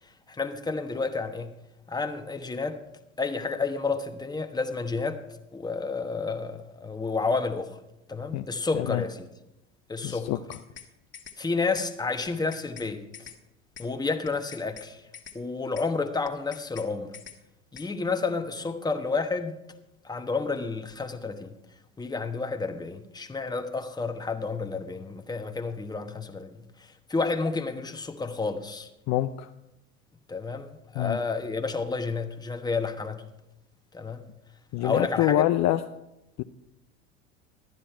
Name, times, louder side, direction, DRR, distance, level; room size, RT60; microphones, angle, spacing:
voice 1, 0.3-1.5 1.9-2.8 3.2-5.2 5.5-7.8 8.1-9.3 9.9-10.3 11.4-13.3 13.8-15.0 15.3-17.1 17.7-19.6 20.0-21.5 22.0-28.9 30.3-33.2 33.9-34.2 34.8-35.4, left 4 dB, 10° left, 1.1 m, -30 dB
voice 2, 8.7-9.0 10.0-10.4 29.1-29.5 31.0-31.2 34.7-35.8 36.4-36.5, left 14 dB, 45° left, 0.5 m, -25 dB
sound 1, 10.3-10.9 11.1-11.4 11.8-11.9 12.3-12.9 13.1-13.4 13.8-13.9 14.3-14.9 15.1-15.4 15.8-15.9 16.3-16.9 17.1-17.4 17.8-17.9, left 8 dB, 30° left, 1.5 m, -45 dB
12.0 x 10.0 x 4.5 m
hypercardioid pair, 85°, 38 cm